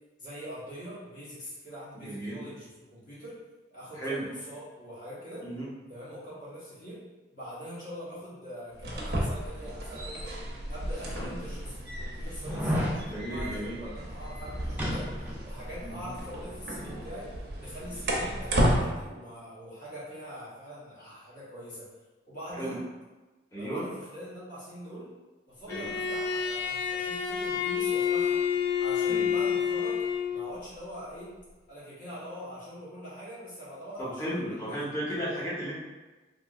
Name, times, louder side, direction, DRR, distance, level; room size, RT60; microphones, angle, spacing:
voice 1, 0.2-3.4 3.7-5.5 5.9-7.0 7.3-10.4 10.7-15.1 15.4-17.3 17.6-21.9 22.3-22.8 23.6-25.1 25.5-28.4 28.8-30.0 30.3-31.3 31.7-34.8 35.3-35.5, equal, 50° left, -9 dB, 1.3 m, -43 dB
voice 2, 1.9-2.4 4.0-4.3 5.4-5.7 11.1-11.3 13.1-13.8 15.8-16.1 22.6-22.8 23.5-23.8 25.7-25.9 29.1-29.3 34.0-35.7, right 1 dB, 15° left, -8 dB, 1.0 m, -35 dB
sound 1, 8.7-18.8, equal, 65° right, 0.6 m, -33 dB
sound 2, 10.4-10.5 11.2-11.3 12.4-13.0 14.8-15.5 15.8-15.9, equal, 10° right, 0.6 m, -30 dB
Bowed string instrument, 25.7-30.5, left 7 dB, 80° left, 0.4 m, -28 dB
3.5 x 2.7 x 2.4 m, 1.2 s
head